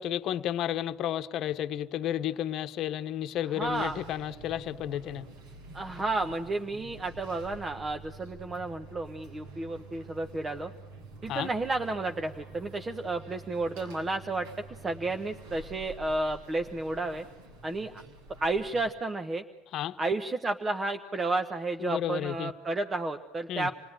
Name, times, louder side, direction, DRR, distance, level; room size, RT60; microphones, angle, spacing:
voice 1, 0.0-5.3 11.3-11.5 19.7-20.0 21.8-22.5 23.5-23.7, left 11 dB, 60° left, 1.0 m, -32 dB
voice 2, 3.4-4.0 5.7-10.7 11.2-14.5 14.8-17.2 17.6-17.9 18.4-19.4 20.0-23.7, right 2 dB, 25° right, 1.1 m, -32 dB
sound 1, 3.6-18.9, right 2 dB, 90° right, 6.4 m, -48 dB
28.0 x 18.5 x 9.1 m
supercardioid pair, 105°, 0 cm